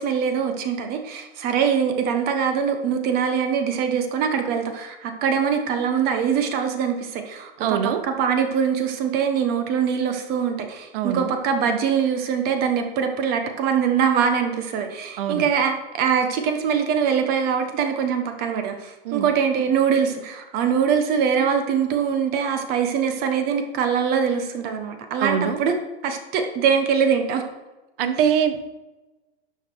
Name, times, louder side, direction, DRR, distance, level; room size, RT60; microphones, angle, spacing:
voice 1, 0.0-25.7 26.0-27.5, right 7 dB, 30° right, 6 dB, 1.1 m, -23 dB
voice 2, 7.6-8.0 10.9-11.3 15.2-15.5 19.0-19.3 25.2-25.6 28.0-28.6, right 8 dB, 60° right, 9 dB, 1.2 m, -23 dB
11.5 x 6.6 x 4.6 m, 1.1 s
supercardioid pair, 155°, 32 cm